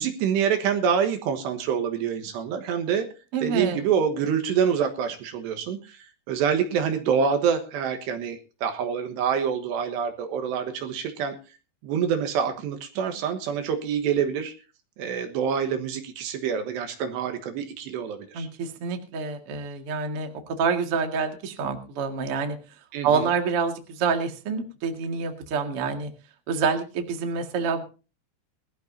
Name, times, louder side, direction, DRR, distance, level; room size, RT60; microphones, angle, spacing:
voice 1, 0.0-3.1 3.4-11.4 11.8-14.5 15.0-18.5 22.9-23.3, right 7 dB, 70° right, 7 dB, 3.3 m, -26 dB
voice 2, 3.3-3.8 18.3-22.6 23.0-26.1 26.5-27.8, right 5 dB, 45° right, 4 dB, 1.9 m, -27 dB
21.5 x 13.5 x 2.7 m, 0.34 s
omnidirectional pair, 5.4 m